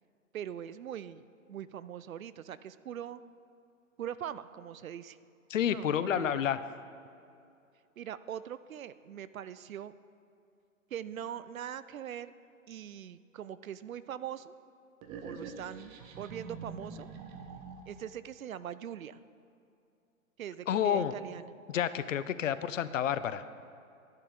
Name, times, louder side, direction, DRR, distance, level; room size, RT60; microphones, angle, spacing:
voice 1, 0.3-1.2 1.5-3.2 4.0-5.2 5.7-6.4 8.0-9.9 10.9-12.3 12.7-14.5 15.2-17.1 17.9-19.2 20.4-21.5, right 9 dB, 75° right, 15 dB, 0.5 m, -42 dB
voice 2, 5.5-6.6 20.7-21.1 21.7-23.4, left 9 dB, 65° left, 14 dB, 0.6 m, -29 dB
sound 1, 15.0-18.1, right 5 dB, 25° right, 0.9 m, -45 dB
12.5 x 10.5 x 3.6 m, 2.5 s
figure-of-eight pair, 125°, 41 cm